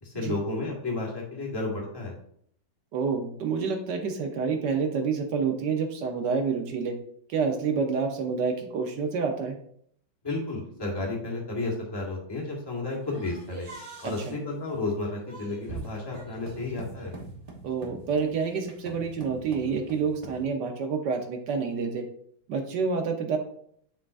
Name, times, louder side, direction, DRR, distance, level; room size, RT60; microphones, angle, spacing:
voice 1, 0.0-2.1 10.2-13.7 14.0-17.1, left 2 dB, 15° left, -2 dB, 1.4 m, -32 dB
voice 2, 2.9-7.0 7.3-9.6 14.0-14.4 17.6-22.0 22.5-23.4, right 5 dB, 65° right, 4 dB, 1.4 m, -28 dB
sound 1, 13.0-20.4, right 3 dB, 30° right, 0.7 m, -44 dB
10.5 x 3.7 x 2.6 m, 0.66 s
omnidirectional pair, 2.3 m